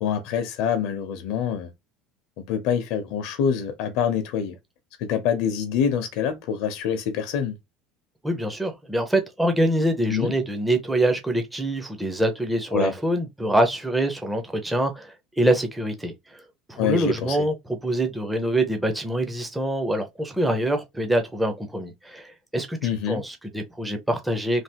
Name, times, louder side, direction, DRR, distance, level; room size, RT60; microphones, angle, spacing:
voice 1, 0.0-1.7 2.4-4.6 5.0-7.6 10.1-10.3 12.7-12.9 16.8-17.4 22.8-23.2, left 8 dB, 60° left, 0.7 m, -25 dB
voice 2, 8.2-16.1 16.7-22.8 23.1-24.6, right 1 dB, 5° right, 0.5 m, -25 dB
3.3 x 2.3 x 2.8 m
cardioid pair, 170°, 0 cm